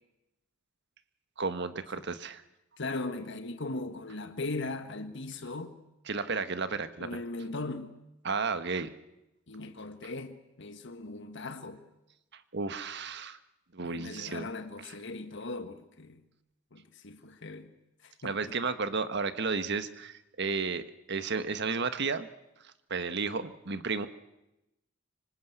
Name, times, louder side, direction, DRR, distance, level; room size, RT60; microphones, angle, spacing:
voice 1, 1.4-2.4 6.1-7.1 8.2-8.9 12.5-13.4 13.7-14.5 18.2-22.3 22.6-24.1, right 4 dB, 60° right, 1.5 m, -33 dB
voice 2, 2.8-5.8 7.0-8.0 9.5-11.8 13.8-16.2 16.7-17.7 18.0-18.6, left 2 dB, 65° left, 1.6 m, -39 dB
25.5 x 25.0 x 8.1 m
head